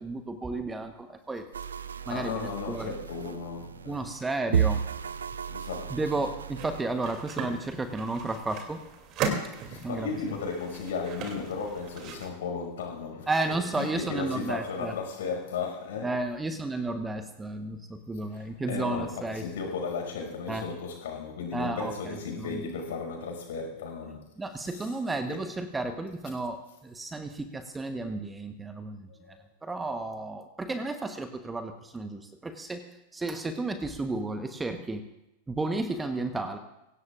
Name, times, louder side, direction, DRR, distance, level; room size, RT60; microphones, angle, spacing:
voice 1, 0.0-1.4 2.1-2.4 2.7-2.9 3.9-4.8 5.9-8.8 9.8-10.1 13.3-14.9 16.0-19.4 20.5-20.6 21.5-21.9 22.4-22.6 24.4-29.1 29.6-32.8 33.1-35.0 35.5-36.6, right 2 dB, 10° right, 8 dB, 1.1 m, -32 dB
sound 1, 1.5-6.8, right 8 dB, 70° right, 0.5 m, -33 dB
voice 2, 2.1-4.0 5.5-6.2 9.6-16.1 18.3-24.3 24.6-24.9 25.3-25.4 29.1-29.4, left 5 dB, 60° left, 2 dB, 5.6 m, -35 dB
sound 2, 6.5-12.3, right 5 dB, 35° right, 2.8 m, -37 dB
23.5 x 17.5 x 2.5 m, 0.95 s
figure-of-eight pair, 90°, 0 cm